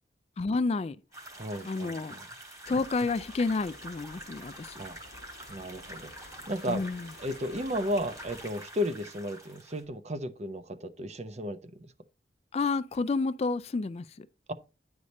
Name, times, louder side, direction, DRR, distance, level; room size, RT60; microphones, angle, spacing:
voice 1, 0.4-1.0 1.6-2.2 2.7-4.8 6.7-7.1 12.5-14.3, left 3 dB, 35° left, 0.3 m, -30 dB
sound 1, 1.1-9.8, right 1 dB, 20° right, 2.5 m, -46 dB
voice 2, 1.3-2.3 4.8-5.0 5.5-6.1 6.5-6.8 7.2-11.9 14.5-14.6, equal, 40° right, 0.7 m, -34 dB
sound 2, 2.6-8.5, left 3 dB, 65° left, 0.9 m, -53 dB
9.7 x 5.0 x 4.1 m
head